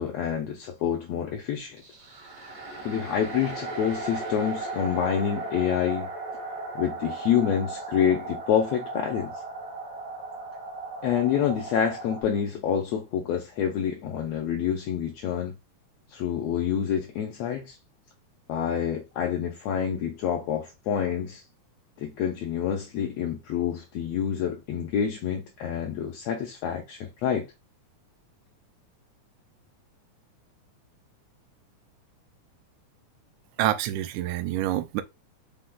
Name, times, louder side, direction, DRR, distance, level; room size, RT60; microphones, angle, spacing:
voice 1, 0.0-1.8 2.8-6.1 6.7-9.4 11.0-15.5 16.1-17.8 18.5-21.4 22.0-27.5, left 8 dB, 75° left, 1.6 m, -27 dB
sound 1, 1.8-12.2, right 3 dB, 55° right, 1.1 m, -36 dB
voice 2, 33.6-35.0, right 13 dB, 80° right, 1.9 m, -27 dB
5.0 x 2.3 x 3.7 m
omnidirectional pair, 3.5 m